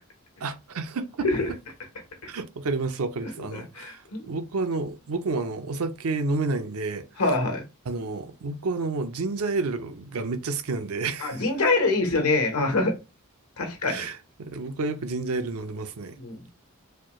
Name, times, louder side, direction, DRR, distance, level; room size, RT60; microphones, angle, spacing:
voice 1, 0.4-1.3 2.3-7.1 7.9-11.4 13.8-16.2, right 3 dB, 80° right, 0.6 m, -30 dB
voice 2, 3.5-4.3 7.2-7.6 11.2-13.0 13.6-14.0 16.2-16.5, left 2 dB, 85° left, 1.2 m, -25 dB
4.2 x 2.3 x 3.0 m
head